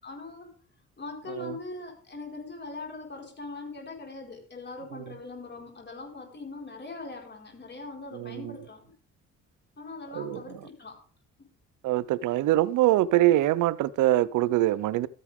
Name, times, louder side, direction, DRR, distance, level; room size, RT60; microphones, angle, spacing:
voice 1, 0.0-0.5 1.0-8.9 9.8-11.0, left 3 dB, 35° left, 4.7 m, -41 dB
voice 2, 8.1-8.5 10.1-10.4 11.8-15.1, right 15 dB, 80° right, 0.5 m, -24 dB
13.0 x 9.9 x 3.5 m
cardioid pair, 90°, 30 cm